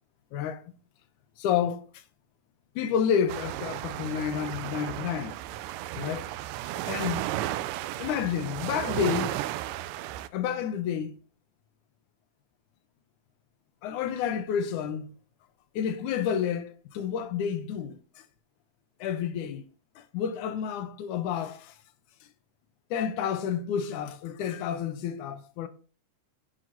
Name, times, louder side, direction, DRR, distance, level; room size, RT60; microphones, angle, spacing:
voice 1, 0.3-0.7 1.4-2.0 2.8-5.4 5.9-6.3 6.9-7.3 8.0-9.4 10.3-11.1 13.8-15.1 15.8-18.2 19.0-21.8 22.9-25.7, left 8 dB, 75° left, 2.2 m, -30 dB
sound 1, 3.3-10.3, right 14 dB, 90° right, 2.1 m, -34 dB
9.4 x 4.0 x 5.9 m
omnidirectional pair, 3.6 m